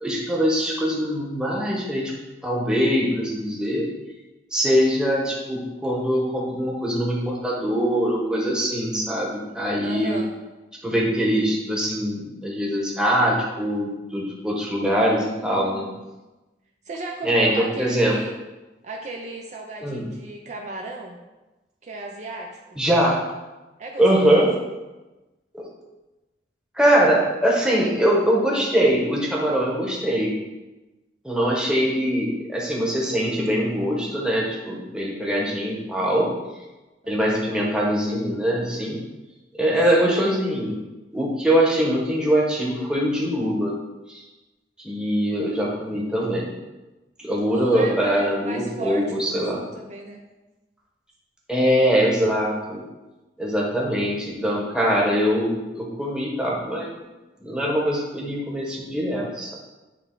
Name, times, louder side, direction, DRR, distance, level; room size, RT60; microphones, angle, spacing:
voice 1, 0.0-2.1 2.4-3.8 4.5-10.2 10.8-15.9 17.2-18.2 19.8-20.1 22.8-23.2 24.0-24.5 25.5-25.7 26.7-30.3 31.2-36.3 37.1-39.0 39.5-40.7 41.1-43.7 44.1-44.2 44.8-46.5 47.2-49.6 51.5-52.8 53.4-56.9 57.4-59.6, equal, 5° right, -3 dB, 1.1 m, -22 dB
voice 2, 9.8-10.3 14.8-16.0 16.8-18.3 18.8-21.2 21.8-22.8 23.8-24.5 37.0-37.4 40.0-40.1 47.5-49.5 49.7-50.2, right 2 dB, 40° right, 0 dB, 0.6 m, -35 dB
8.5 x 3.3 x 3.8 m, 1.1 s
head